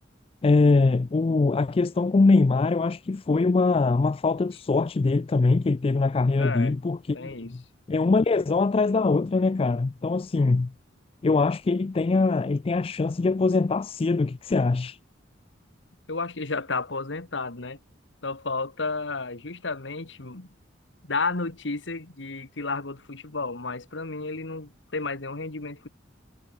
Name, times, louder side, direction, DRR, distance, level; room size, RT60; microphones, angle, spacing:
voice 1, 0.4-7.6 7.9-10.7 11.2-15.0, left 3 dB, 30° left, 0.4 m, -22 dB
voice 2, 6.4-6.8 7.1-7.6 16.1-17.8 18.2-20.5 21.0-25.9, left 3 dB, 70° left, 1.7 m, -32 dB
head